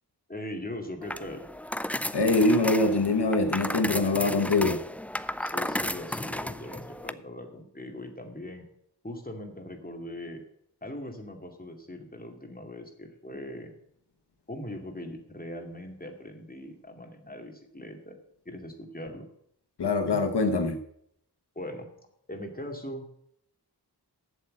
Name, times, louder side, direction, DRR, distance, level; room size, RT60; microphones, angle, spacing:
voice 1, 0.3-1.4 5.4-8.6 9.0-10.4 10.8-13.7 14.5-18.2 18.5-19.3 21.6-21.9 22.3-23.1, left 1 dB, 20° left, 3 dB, 2.3 m, -40 dB
sound 1, 1.0-7.1, left 1 dB, 5° left, 0.4 m, -34 dB
voice 2, 2.1-4.8 19.8-20.8, left 2 dB, 80° left, 7 dB, 1.0 m, -24 dB
8.1 x 7.5 x 8.7 m, 0.71 s
wide cardioid pair, 60°, 40 cm